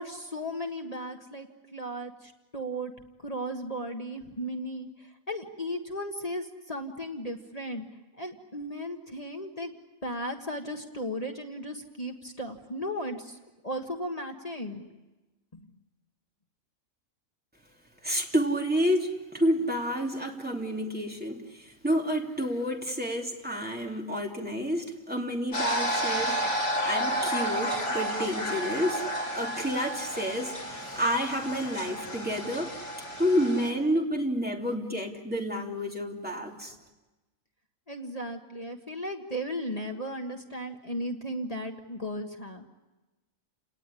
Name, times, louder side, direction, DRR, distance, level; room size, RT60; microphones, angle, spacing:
voice 1, 0.0-2.9 3.2-7.9 8.2-9.7 10.0-13.4 13.6-14.9 15.5-15.7 37.9-42.6, equal, 30° left, 3 dB, 1.6 m, -36 dB
voice 2, 18.0-29.0 29.3-32.8 33.2-36.7, equal, 5° right, 0 dB, 2.8 m, -29 dB
sound 1, 25.5-33.7, equal, 60° left, 4.5 m, -31 dB
30.0 x 19.0 x 9.9 m, 1.1 s
omnidirectional pair, 1.4 m